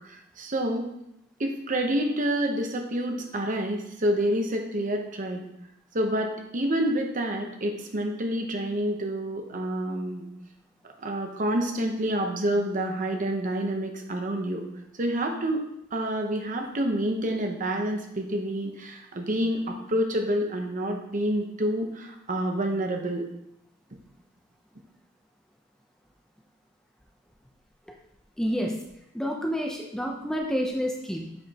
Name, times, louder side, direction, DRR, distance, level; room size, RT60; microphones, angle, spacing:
voice 1, 0.1-0.9 1.4-5.5 5.9-10.3 11.0-14.7 15.0-15.6 15.9-23.3, right 1 dB, 45° right, 3 dB, 0.9 m, -28 dB
voice 2, 28.4-28.7 29.1-31.4, equal, 5° left, 0 dB, 0.6 m, -29 dB
7.7 x 4.9 x 2.9 m, 0.81 s
head